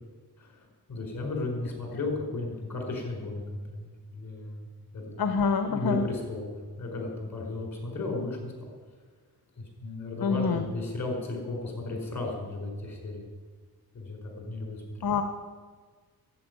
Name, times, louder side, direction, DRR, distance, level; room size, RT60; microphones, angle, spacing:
voice 1, 0.4-4.7 4.9-5.1 5.7-8.7 9.6-13.2 13.9-15.0, left 2 dB, 45° left, 0 dB, 4.9 m, -35 dB
voice 2, 5.2-6.1 10.2-10.6 15.0-15.2, left 5 dB, 65° left, 8 dB, 1.0 m, -26 dB
11.0 x 8.7 x 9.5 m, 1.5 s
wide cardioid pair, 105°, 38 cm